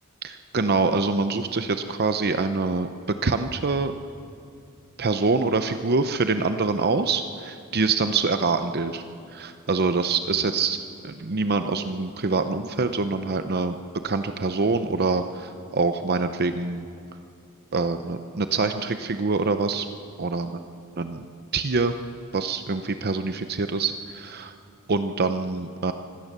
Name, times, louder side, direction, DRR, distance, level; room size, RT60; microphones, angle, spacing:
voice 1, 0.2-3.9 5.0-9.0 9.3-10.8 11.0-13.8 14.0-16.8 17.7-19.9 20.2-20.6 21.0-21.3 21.5-21.9 22.3-24.5 24.9-25.9, right 4 dB, 45° right, 9 dB, 0.7 m, -25 dB
25.0 x 16.5 x 6.8 m, 2.5 s
head